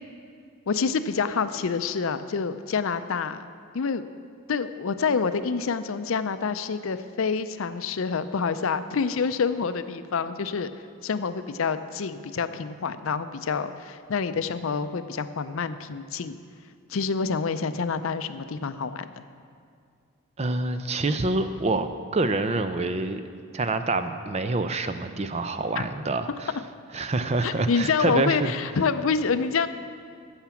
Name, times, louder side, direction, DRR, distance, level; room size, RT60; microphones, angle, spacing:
voice 1, 0.7-3.5 3.7-4.0 4.5-10.7 11.0-16.3 16.9-19.1 25.8-25.9 27.4-29.7, left 5 dB, 70° left, 12 dB, 0.5 m, -27 dB
voice 2, 20.4-21.9 22.1-23.2 23.5-26.5 26.9-28.5, right 2 dB, 30° right, 9 dB, 0.5 m, -26 dB
14.5 x 5.9 x 7.1 m, 2.2 s
head